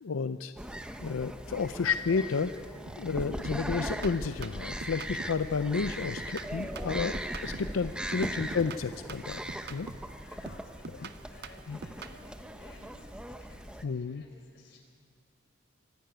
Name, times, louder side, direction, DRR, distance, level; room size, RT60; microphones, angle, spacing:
voice 1, 0.0-0.5 1.0-2.5 3.0-7.1 7.4-9.9 11.0-11.1 11.7-11.8 13.8-14.2, left 5 dB, 80° left, 10 dB, 0.5 m, -31 dB
sound 1, 0.6-13.8, right 1 dB, 5° right, 0.7 m, -39 dB
sound 2, 2.9-3.1 3.4-5.5 5.8-7.8 8.1-10.2 10.5-12.2, right 4 dB, 50° right, 0.7 m, -45 dB
voice 2, 8.0-8.3 10.3-14.8, left 2 dB, 55° left, 1 dB, 4.3 m, -56 dB
25.0 x 11.5 x 9.1 m, 2.3 s
head